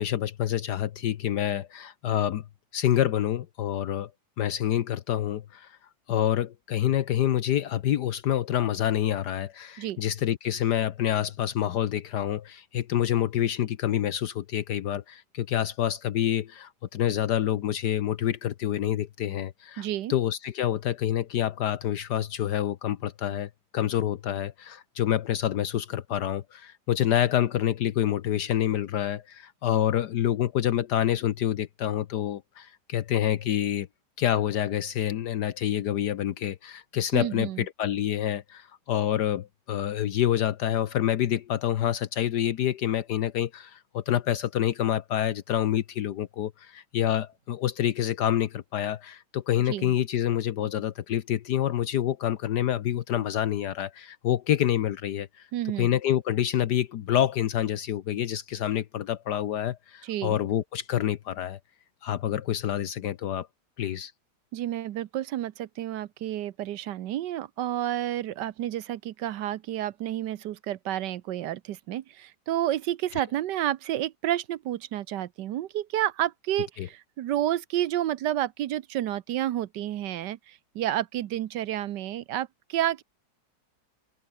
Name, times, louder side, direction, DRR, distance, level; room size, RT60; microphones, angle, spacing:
voice 1, 0.0-2.4 2.7-4.1 4.4-5.8 6.1-33.9 34.2-55.5 55.8-61.6 62.0-63.5 63.8-64.1 76.8-76.9, left 11 dB, 70° left, 1.4 m, -27 dB
voice 2, 19.8-20.1 37.1-37.6 49.7-49.9 55.5-55.9 60.0-60.4 64.5-83.0, right 12 dB, 80° right, 1.4 m, -30 dB
open air
omnidirectional pair, 1.9 m